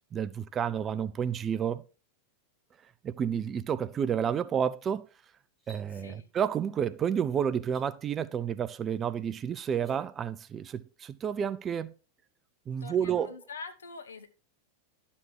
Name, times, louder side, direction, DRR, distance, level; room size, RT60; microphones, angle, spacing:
voice 1, 0.1-1.8 3.0-5.1 5.7-11.9 12.7-13.4, right 8 dB, 25° right, 0.7 m, -30 dB
sound 1, 5.5-5.9 7.6-7.8 9.7-10.0, right 1 dB, ahead, 4.1 m, -55 dB
voice 2, 5.9-6.3 12.8-14.3, left 4 dB, 70° left, 1.7 m, -44 dB
12.5 x 7.1 x 4.6 m
figure-of-eight pair, 90°, 0 cm